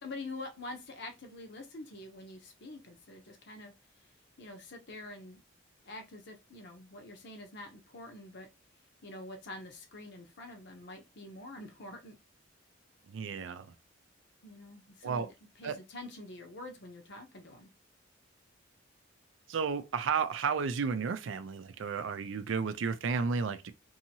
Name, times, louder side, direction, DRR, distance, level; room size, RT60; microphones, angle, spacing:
voice 1, 0.0-3.7 4.4-5.4 5.8-8.5 9.0-12.2 14.4-17.7, left 2 dB, 60° left, 0.8 m, -46 dB
voice 2, 13.1-13.7 15.0-15.3 15.6-15.8 19.5-23.7, right 5 dB, 75° right, 0.4 m, -32 dB
2.7 x 2.7 x 2.8 m
head